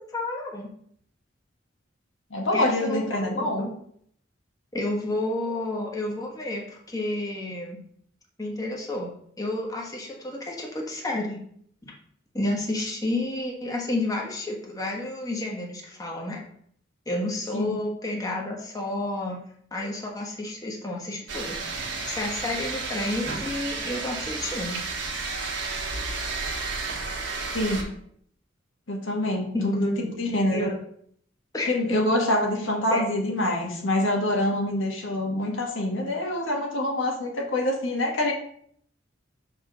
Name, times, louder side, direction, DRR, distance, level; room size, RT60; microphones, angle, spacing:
voice 1, 0.1-0.7 2.5-3.7 4.7-7.8 8.4-9.1 9.4-11.4 11.8-11.9 12.3-16.4 17.1-19.4 19.7-21.6 22.1-24.8 29.5-30.1 30.5-30.7 31.5-32.0 32.9-33.1, left 2 dB, 20° left, -2 dB, 1.3 m, -30 dB
voice 2, 2.3-3.7 17.5-17.8 27.5-27.8 28.9-29.8 30.2-30.7 31.7-38.3, left 1 dB, 85° left, 0 dB, 1.6 m, -25 dB
sound 1, 21.3-27.8, right 3 dB, 65° right, 1.5 m, -32 dB
5.0 x 4.4 x 6.1 m, 0.65 s
head